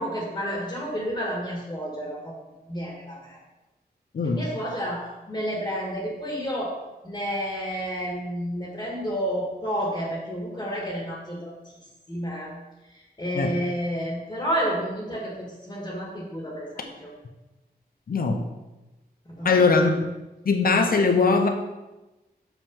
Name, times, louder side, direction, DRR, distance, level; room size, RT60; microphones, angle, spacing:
voice 1, 0.0-2.4 2.7-3.4 4.2-6.8 7.0-11.7 12.1-12.5 12.9-17.1 19.3-19.6, equal, 25° left, -3 dB, 2.0 m, -30 dB
voice 2, 18.1-18.4 19.4-19.9 20.5-21.5, left 4 dB, 65° left, 5 dB, 0.9 m, -20 dB
6.7 x 5.9 x 5.5 m, 1.1 s
wide cardioid pair, 125°, 16 cm